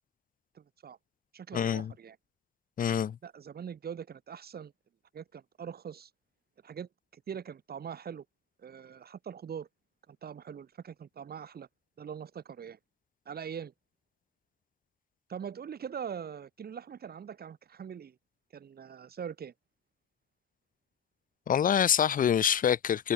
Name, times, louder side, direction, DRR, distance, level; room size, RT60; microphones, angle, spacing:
voice 1, 0.5-1.0 1.3-2.2 3.2-4.7 5.1-6.1 6.6-8.2 8.6-9.7 10.1-11.7 12.0-12.8 13.3-13.7 15.3-18.2 18.5-19.5, right 7 dB, 70° right, 3.8 m, -42 dB
voice 2, 1.5-1.9 2.8-3.2 21.5-23.1, left 8 dB, 55° left, 0.6 m, -26 dB
open air
wide cardioid pair, 140°, 17 cm